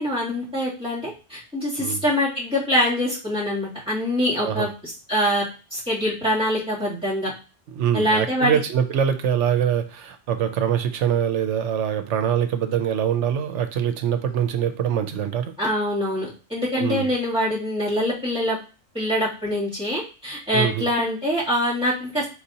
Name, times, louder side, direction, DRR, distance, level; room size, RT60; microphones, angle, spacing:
voice 1, 0.0-5.4 5.7-7.3 7.9-8.6 15.6-18.6 18.9-22.3, equal, 5° right, -8 dB, 2.4 m, -24 dB
voice 2, 7.7-15.5 16.8-17.1 20.5-20.9, right 9 dB, 70° right, 8 dB, 0.9 m, -24 dB
4.6 x 4.0 x 2.8 m, 0.34 s
omnidirectional pair, 1.3 m